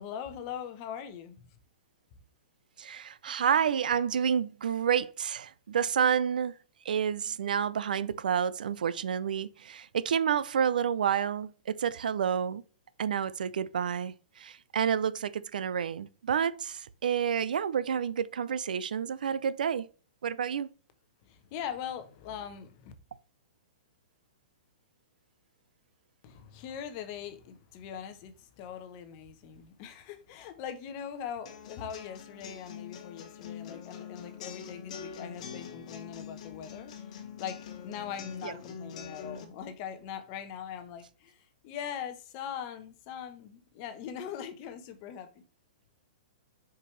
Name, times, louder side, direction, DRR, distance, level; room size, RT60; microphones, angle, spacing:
voice 1, 0.0-1.5 21.2-22.9 26.2-45.4, left 8 dB, 35° left, 0.9 m, -41 dB
voice 2, 2.8-6.5 6.8-12.6 13.0-19.9 20.2-20.7 38.4-38.5, right 8 dB, 85° right, 0.5 m, -29 dB
sound 1, 31.5-39.4, left 7 dB, 50° left, 1.2 m, -44 dB
6.3 x 4.8 x 3.2 m
hypercardioid pair, 160°, 4 cm